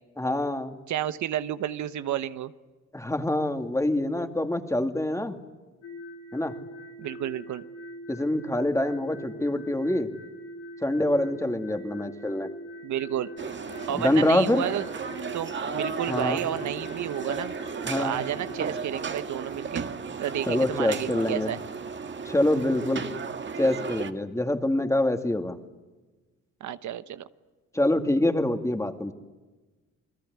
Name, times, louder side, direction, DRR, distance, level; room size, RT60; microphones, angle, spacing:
voice 1, 0.2-0.8 2.9-5.4 6.3-6.5 8.1-10.1 10.8-12.5 13.9-14.6 16.1-16.4 17.8-18.1 20.5-21.5 22.3-23.1 23.6-25.6 27.7-29.1, left 1 dB, 10° left, 7 dB, 2.3 m, -25 dB
voice 2, 0.9-2.5 7.0-7.6 12.8-13.3 13.9-14.8 15.3-17.5 17.9-19.9 20.2-21.6 26.6-27.3, right 11 dB, 70° right, 12 dB, 1.1 m, -31 dB
sound 1, 5.8-18.7, right 1 dB, 60° left, 6.1 m, -43 dB
sound 2, 13.4-24.1, right 5 dB, 40° right, 1.8 m, -34 dB
28.5 x 21.0 x 9.6 m, 1.2 s
cardioid pair, 90°, 30 cm